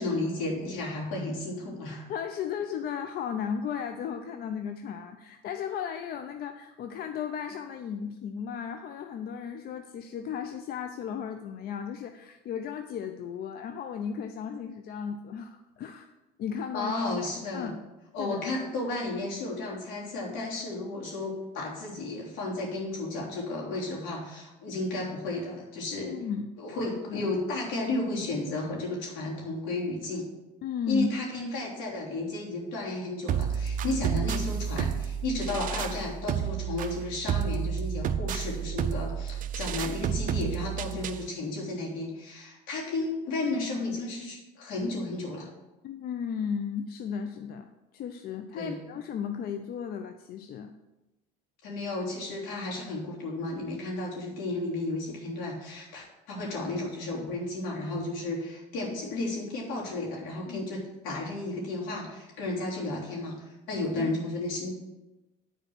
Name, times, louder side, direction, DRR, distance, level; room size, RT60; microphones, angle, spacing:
voice 1, 0.0-2.1 16.7-17.7 18.1-26.2 26.6-30.3 30.9-45.5 48.5-48.8 51.6-64.7, left 2 dB, 75° left, -3 dB, 3.3 m, -33 dB
voice 2, 2.1-16.1 16.4-16.9 17.5-17.8 18.2-18.4 26.0-26.5 27.1-27.2 30.6-31.1 45.8-47.7 47.9-50.7 60.5-60.6 64.0-64.2, left 7 dB, 50° left, 7 dB, 0.6 m, -35 dB
sound 1, 33.3-41.3, right 8 dB, 40° right, 0.5 m, -31 dB
9.1 x 4.5 x 6.1 m, 1.0 s
supercardioid pair, 105°, 21 cm